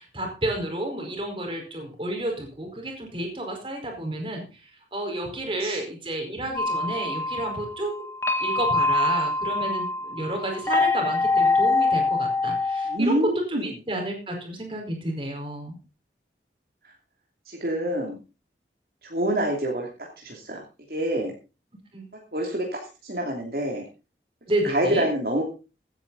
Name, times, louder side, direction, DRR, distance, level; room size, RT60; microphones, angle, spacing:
voice 1, 0.0-8.1 8.4-13.2 13.5-15.8 21.9-22.1 24.5-25.1, right 1 dB, 30° right, 2 dB, 4.7 m, -31 dB
sound 1, 6.6-13.0, left 3 dB, 15° left, 1.3 m, -24 dB
voice 2, 12.9-13.6 17.5-18.2 19.0-19.9 20.2-20.6 20.9-21.3 22.3-22.7 23.0-23.8 24.6-25.4, right 1 dB, 55° right, 0 dB, 2.9 m, -26 dB
16.0 x 10.0 x 4.0 m, 0.32 s
head